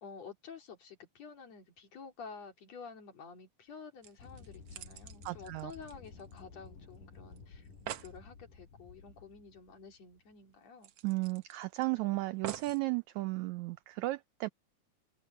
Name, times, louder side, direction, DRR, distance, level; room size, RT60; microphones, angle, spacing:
voice 1, 0.0-7.7 8.0-10.9, left 5 dB, 55° left, 3.8 m, -50 dB
sound 1, 3.7-3.8 4.0-6.7 6.9-7.0 7.4-7.5 7.6-8.2 9.7-9.8 10.1-10.2 10.8-11.8 12.4-12.8 13.6-13.7, right 11 dB, 65° right, 1.5 m, -46 dB
sound 2, 4.2-10.5, left 4 dB, 90° left, 6.7 m, -54 dB
voice 2, 5.2-5.7 11.0-14.5, right 21 dB, 85° right, 1.6 m, -34 dB
omnidirectional pair, 3.8 m